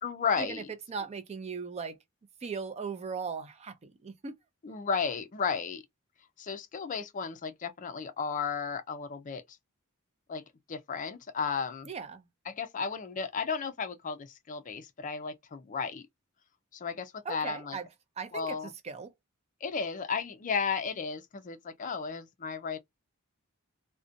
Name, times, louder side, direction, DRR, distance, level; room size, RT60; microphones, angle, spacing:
voice 1, 0.0-0.7 4.6-5.8 6.4-9.4 10.3-10.4 10.7-11.9 12.5-16.0 16.7-17.8 18.3-18.7 19.6-22.8, left 5 dB, 35° left, 0.4 m, -34 dB
voice 2, 0.9-2.0 2.4-3.7 4.0-4.4 11.9-12.2 17.3-17.9 18.2-18.6 18.8-19.1, right 5 dB, 30° right, 0.4 m, -38 dB
2.5 x 2.1 x 2.5 m
head